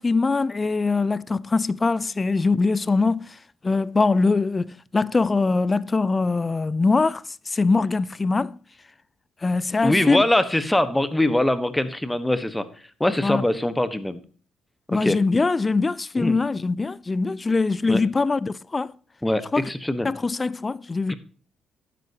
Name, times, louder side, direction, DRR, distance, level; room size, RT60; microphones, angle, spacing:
voice 1, 0.0-3.4 3.6-8.6 9.4-10.2 13.2-13.4 14.9-18.9 19.5-19.7 20.0-21.1, left 3 dB, 25° left, 0.4 m, -22 dB
voice 2, 9.8-12.6 13.0-14.2 14.9-15.2 16.2-16.4 17.9-18.0 19.2-20.1 21.1-21.2, left 1 dB, 10° left, 1.2 m, -22 dB
12.0 x 10.0 x 2.9 m
cardioid pair, 90°, 0 cm